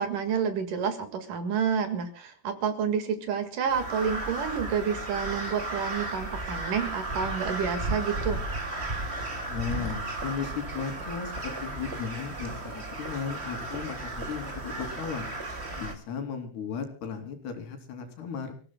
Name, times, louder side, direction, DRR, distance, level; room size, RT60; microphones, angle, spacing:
voice 1, 0.0-8.4, right 7 dB, 60° right, 8 dB, 3.0 m, -29 dB
Crow, 3.7-15.9, right 2 dB, 20° right, 1.8 m, -34 dB
voice 2, 9.5-15.3 15.8-18.6, left 6 dB, 75° left, 5 dB, 4.8 m, -36 dB
29.5 x 16.0 x 2.2 m, 0.37 s
omnidirectional pair, 4.7 m